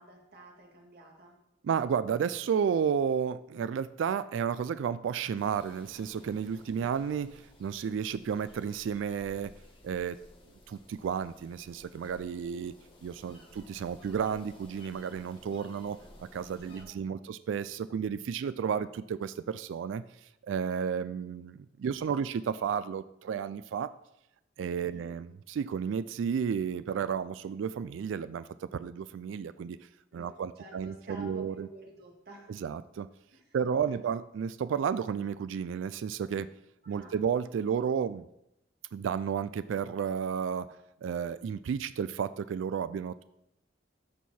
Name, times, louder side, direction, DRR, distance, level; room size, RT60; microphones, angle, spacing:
voice 1, 0.0-1.4 13.3-13.6 16.7-17.3 21.8-22.3 24.8-25.1 30.1-32.6 33.3-34.0 36.8-37.2, right 2 dB, 55° right, 0 dB, 2.1 m, -51 dB
voice 2, 1.6-9.5 9.8-10.2 10.7-12.7 13.0-20.0 20.4-23.9 24.6-29.8 30.1-31.7 32.5-33.1 33.5-36.5 36.9-38.2 38.9-40.7 41.0-43.2, right 7 dB, 85° right, 15 dB, 0.3 m, -32 dB
sound 1, 5.4-16.8, left 1 dB, 30° left, 1.6 m, -56 dB
13.5 x 4.7 x 4.3 m, 0.85 s
head